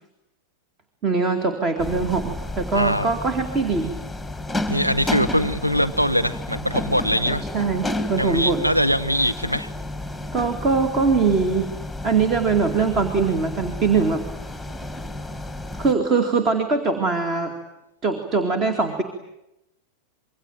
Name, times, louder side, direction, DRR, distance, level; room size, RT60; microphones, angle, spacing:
voice 1, 1.0-4.0 7.5-8.6 10.3-11.7 12.0-14.2 15.8-17.5 18.0-19.0, right 4 dB, 30° right, 8 dB, 2.4 m, -22 dB
sound 1, 1.8-15.9, left 1 dB, ahead, 2.2 m, -31 dB
voice 2, 2.7-3.1 4.7-7.4 8.2-9.7, equal, 90° right, 11 dB, 1.2 m, -22 dB
26.5 x 23.0 x 9.2 m, 0.86 s
figure-of-eight pair, 90°, 0 cm